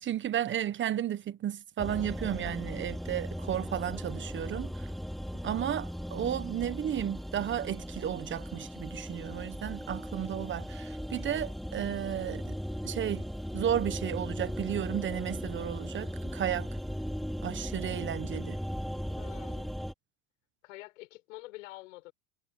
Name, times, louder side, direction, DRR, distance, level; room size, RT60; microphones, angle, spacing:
voice 1, 0.0-4.9 5.4-12.6 12.8-13.2 13.5-16.7 17.4-18.6, right 10 dB, 30° right, 1.3 m, -33 dB
sound 1, 1.8-19.9, equal, ahead, 2.5 m, -38 dB
voice 2, 19.1-19.7 20.6-22.1, left 20 dB, 80° left, 6.0 m, -47 dB
supercardioid pair, 115°, 37 cm